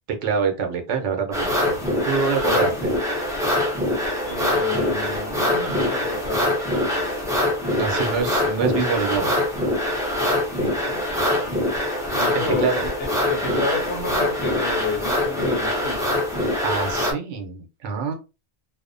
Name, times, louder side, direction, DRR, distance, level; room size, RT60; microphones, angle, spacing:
voice 1, 0.1-1.8 2.0-2.9 7.8-9.4 12.3-12.8 16.6-18.1, right 5 dB, 80° right, 1.0 m, -25 dB
sound 1, 1.3-17.1, left 1 dB, 5° right, 0.4 m, -24 dB
voice 2, 2.4-2.8 4.2-7.1 7.9-8.4 10.5-11.0 11.4-11.7 12.1-16.2, left 3 dB, 75° left, 0.9 m, -31 dB
2.6 x 2.0 x 2.5 m
omnidirectional pair, 1.2 m